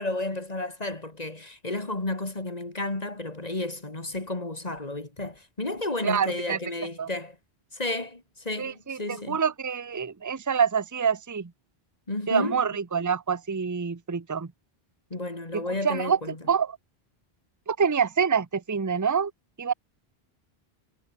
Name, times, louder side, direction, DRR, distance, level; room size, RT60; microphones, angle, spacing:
voice 1, 0.0-7.4 7.7-9.4 12.1-12.6 15.1-16.4, left 2 dB, 40° left, 2.7 m, -32 dB
voice 2, 6.0-6.6 7.0-7.1 8.6-11.5 12.3-14.5 15.5-16.2 16.5-16.8 17.7-19.3 19.6-19.7, right 6 dB, 20° right, 0.7 m, -26 dB
omnidirectional pair, 1.0 m